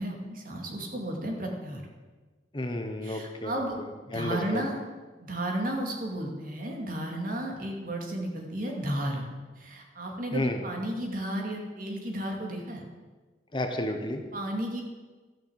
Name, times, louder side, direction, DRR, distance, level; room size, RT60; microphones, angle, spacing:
voice 1, 0.0-1.8 3.0-3.8 4.0-4.8 5.2-9.3 9.6-12.8 14.3-14.8, right 1 dB, 50° right, 1 dB, 2.3 m, -33 dB
voice 2, 2.5-4.6 10.3-10.6 13.5-14.2, left 1 dB, 25° left, 5 dB, 1.0 m, -32 dB
13.5 x 6.7 x 8.0 m, 1.3 s
head